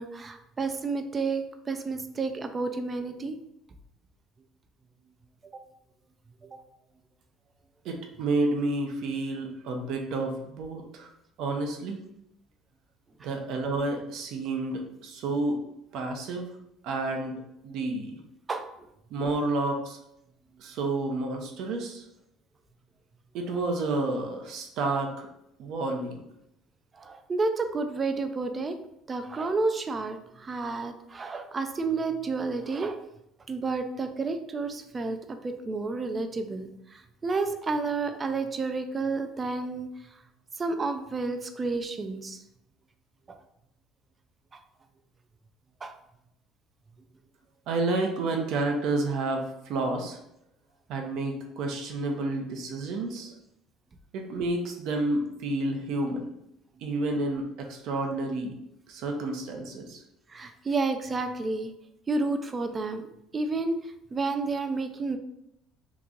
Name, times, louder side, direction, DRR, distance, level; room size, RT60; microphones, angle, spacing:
voice 1, 0.0-3.4 5.5-5.6 6.4-6.6 18.5-18.7 26.9-28.8 29.1-33.0 33.5-39.9 40.6-42.4 43.3-43.4 45.8-45.9 60.3-61.7 62.1-63.1 63.3-65.2, right 3 dB, 25° right, 8 dB, 0.3 m, -30 dB
voice 2, 7.8-11.1 11.4-12.0 13.2-15.6 15.9-16.5 16.8-18.2 19.1-20.0 20.6-22.0 23.3-25.3 25.6-26.2 47.7-50.2 50.9-53.3 54.1-56.3 56.8-58.6 58.9-60.0, right 2 dB, 65° right, 3 dB, 0.7 m, -30 dB
3.0 x 2.4 x 3.7 m, 0.81 s
cardioid pair, 125°, 0 cm